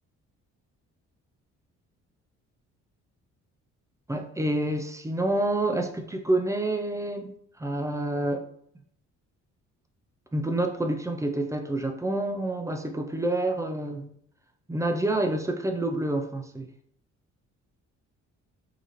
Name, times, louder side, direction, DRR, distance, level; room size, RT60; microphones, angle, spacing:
voice 1, 4.1-7.3 7.6-8.4 10.3-14.1 14.7-16.7, right 1 dB, 10° right, 5 dB, 0.5 m, -28 dB
4.8 x 2.8 x 3.1 m, 0.66 s
cardioid pair, 90°, 30 cm